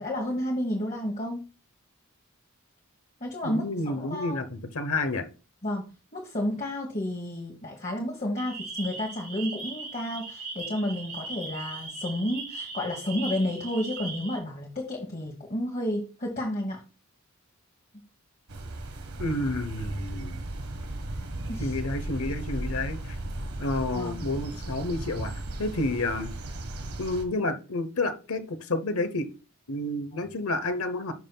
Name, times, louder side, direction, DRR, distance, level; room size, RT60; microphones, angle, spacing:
voice 1, 0.0-1.4 3.2-4.4 5.6-16.8 21.5-21.7 23.9-24.3, left 1 dB, 35° left, 1.3 m, -31 dB
voice 2, 3.4-5.3 19.2-20.4 21.6-23.2 23.6-25.3 25.6-26.3 27.0-29.3 29.7-31.1, left 2 dB, 75° left, 1.0 m, -30 dB
sound 1, 8.4-14.4, right 4 dB, 40° right, 1.6 m, -39 dB
sound 2, 18.5-27.2, right 1 dB, 85° right, 1.4 m, -36 dB
11.0 x 5.6 x 2.3 m
head